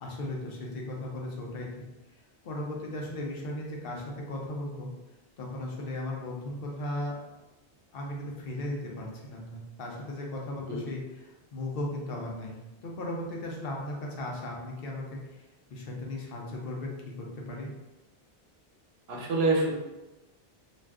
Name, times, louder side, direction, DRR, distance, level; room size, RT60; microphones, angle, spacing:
voice 1, 0.0-1.8 2.4-4.9 5.4-7.2 7.9-12.6 12.8-17.7, left 1 dB, 65° left, -1 dB, 0.8 m, -36 dB
voice 2, 19.1-19.7, right 2 dB, 75° right, 0 dB, 0.9 m, -26 dB
2.5 x 2.4 x 3.3 m, 1.0 s
omnidirectional pair, 1.1 m